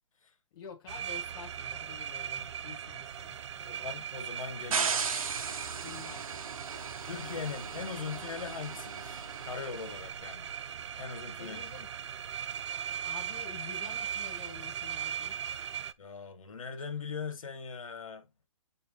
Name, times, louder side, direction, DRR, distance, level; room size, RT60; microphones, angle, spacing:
voice 1, 0.5-3.5 5.8-6.2 11.4-11.9 13.0-15.4, left 7 dB, 40° left, 1.7 m, -48 dB
sound 1, 0.9-15.9, right 9 dB, 55° right, 0.6 m, -39 dB
voice 2, 3.6-5.0 7.1-10.5 11.0-11.7 16.0-18.3, left 6 dB, 75° left, 2.1 m, -40 dB
sound 2, 4.7-9.8, right 5 dB, 85° right, 1.2 m, -36 dB
8.8 x 3.3 x 3.3 m
hypercardioid pair, 160°, 17 cm